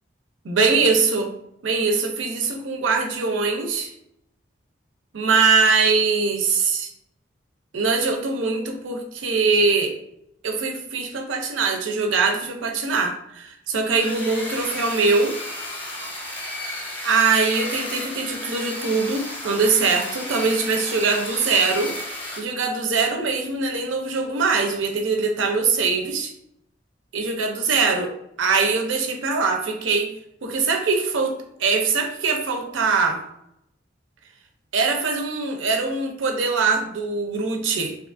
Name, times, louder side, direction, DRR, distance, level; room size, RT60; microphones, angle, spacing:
voice 1, 0.4-1.3 1.6-3.9 5.1-6.9 7.7-9.9 10.4-15.4 17.0-21.9 22.4-26.3 27.1-28.1 28.4-30.1 30.4-33.2 34.7-37.9, right 4 dB, 90° right, 4 dB, 0.5 m, -22 dB
sound 1, 14.0-22.4, left 1 dB, 10° left, 0.5 m, -33 dB
2.7 x 2.3 x 2.4 m, 0.78 s
head